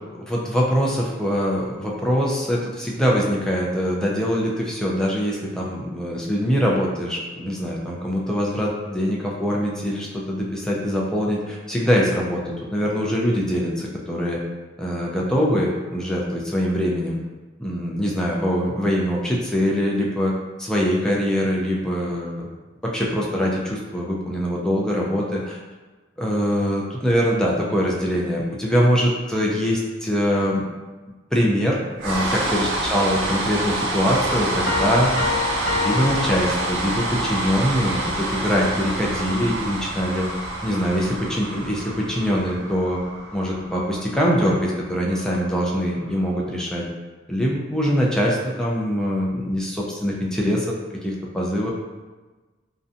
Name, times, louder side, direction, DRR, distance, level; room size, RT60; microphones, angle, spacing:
voice 1, 0.1-12.4 12.7-14.4 14.8-17.2 17.6-20.3 20.6-22.5 22.8-25.6 26.2-30.6 31.3-31.8 32.0-35.3 35.7-40.3 40.6-43.0 43.3-46.8 47.3-50.8 51.0-51.7, equal, 5° left, -4 dB, 0.3 m, -23 dB
sound 1, 32.0-46.1, right 1 dB, 65° right, 0.5 m, -27 dB
sound 2, 34.7-37.2, left 5 dB, 60° left, 0.5 m, -28 dB
2.6 x 2.2 x 2.5 m, 1.3 s
head